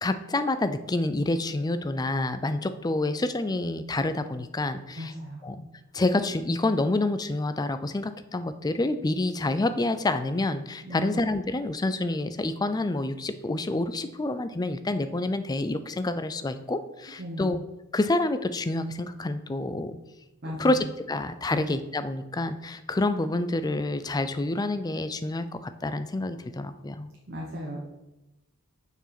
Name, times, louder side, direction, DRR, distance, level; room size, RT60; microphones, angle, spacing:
voice 1, 0.0-5.1 5.4-5.7 5.9-17.6 17.9-20.0 20.6-27.1, left 2 dB, 20° left, 11 dB, 0.4 m, -28 dB
voice 2, 5.0-5.4 10.8-11.1 17.2-17.5 20.4-20.8 21.5-21.6 27.3-27.9, equal, 50° right, -2 dB, 1.2 m, -35 dB
6.8 x 4.6 x 6.0 m, 0.97 s
head